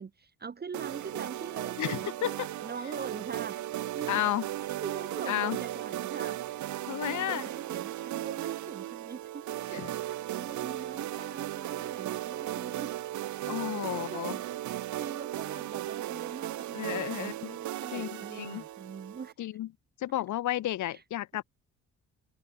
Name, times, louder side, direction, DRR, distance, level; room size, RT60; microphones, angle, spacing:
voice 1, 0.0-2.3 2.6-6.7 7.1-13.0 13.8-19.3 20.9-21.0, right 5 dB, 30° right, 1.4 m, -43 dB
sound 1, 0.7-19.3, right 14 dB, 70° right, 1.1 m, -36 dB
voice 2, 1.8-2.5 4.1-4.4 5.3-5.6 6.9-7.4 9.7-9.9 13.5-14.4 16.7-17.5 17.9-18.6 19.4-19.7 20.0-21.4, left 14 dB, 75° left, 1.4 m, -32 dB
cardioid pair, 90°, 30 cm